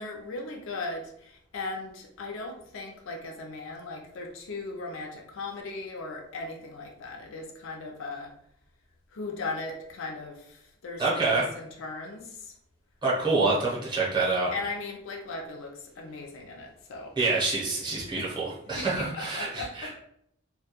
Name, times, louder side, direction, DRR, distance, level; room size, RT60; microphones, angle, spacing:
voice 1, 0.0-8.3 9.1-11.1 11.3-12.6 14.5-17.1 18.2-18.3 18.8-19.9, left 3 dB, 70° left, 1 dB, 0.4 m, -38 dB
voice 2, 11.0-11.5 13.0-14.5 17.2-19.9, right 3 dB, 20° right, -5 dB, 0.6 m, -27 dB
2.2 x 2.2 x 2.8 m, 0.72 s
head